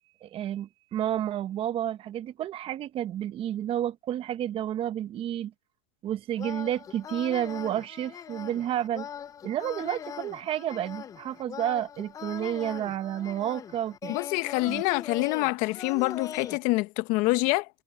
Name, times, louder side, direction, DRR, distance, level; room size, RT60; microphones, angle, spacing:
voice 1, 0.2-5.5 6.0-9.1 9.4-14.2 14.7-14.8 15.2-15.3, right 11 dB, 30° right, 1.2 m, -31 dB
sound 1, 6.4-16.6, left 8 dB, 20° left, 0.5 m, -41 dB
voice 2, 14.1-17.7, left 22 dB, 50° left, 0.9 m, -26 dB
supercardioid pair, 125°, 17 cm